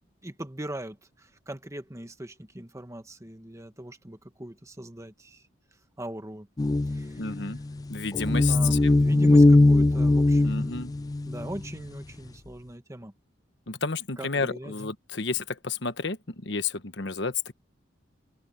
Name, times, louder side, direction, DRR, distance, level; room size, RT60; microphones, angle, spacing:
voice 1, 0.2-5.5 6.0-6.5 6.9-7.6 8.5-10.8 11.2-13.1 14.2-14.7, right 1 dB, 15° right, 1.5 m, -40 dB
sound 1, 6.6-11.8, left 2 dB, 20° left, 0.3 m, -20 dB
voice 2, 7.2-7.6 7.9-9.0 10.4-10.9 13.7-17.5, left 4 dB, 65° left, 1.3 m, -31 dB
head